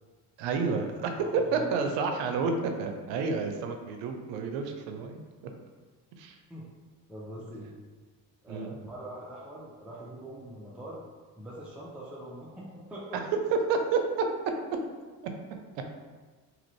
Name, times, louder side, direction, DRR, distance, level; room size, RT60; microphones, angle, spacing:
voice 1, 0.4-2.5 2.8-5.2 6.2-6.4 8.5-8.8 13.5-14.0, right 5 dB, 80° right, 5 dB, 0.6 m, -29 dB
voice 2, 1.2-2.5 6.5-6.7 7.1-7.7 8.4-11.0 11.4-13.2, right 1 dB, 5° right, -5 dB, 0.5 m, -43 dB
2.9 x 2.5 x 3.1 m, 1.4 s
supercardioid pair, 75°, 44 cm